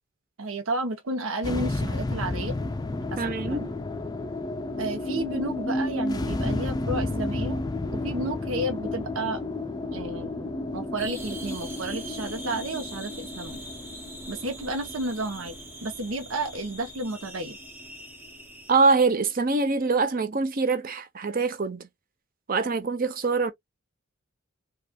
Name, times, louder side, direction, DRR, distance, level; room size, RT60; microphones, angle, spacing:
voice 1, 0.4-2.6 3.1-3.7 4.8-7.6 7.9-9.4 9.9-13.6 14.3-17.6, right 2 dB, 85° right, 0.8 m, -32 dB
sound 1, 1.4-17.8, left 2 dB, 20° left, 0.4 m, -32 dB
voice 2, 3.2-3.7 18.7-21.9 22.5-23.5, right 4 dB, 45° right, 0.7 m, -24 dB
sound 2, 11.0-18.7, right 1 dB, 10° right, 1.0 m, -43 dB
4.7 x 2.4 x 2.2 m
head